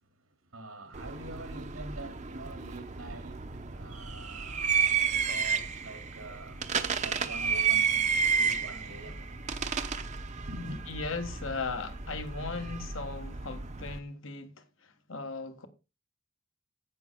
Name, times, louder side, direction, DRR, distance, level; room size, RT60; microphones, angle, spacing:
voice 1, 0.0-9.6 10.2-10.8, right 1 dB, 90° right, 2.8 m, -46 dB
sound 1, 0.9-14.0, right 6 dB, 35° right, 0.8 m, -32 dB
voice 2, 10.9-15.7, left 4 dB, 65° left, 1.5 m, -38 dB
10.5 x 8.5 x 3.6 m
head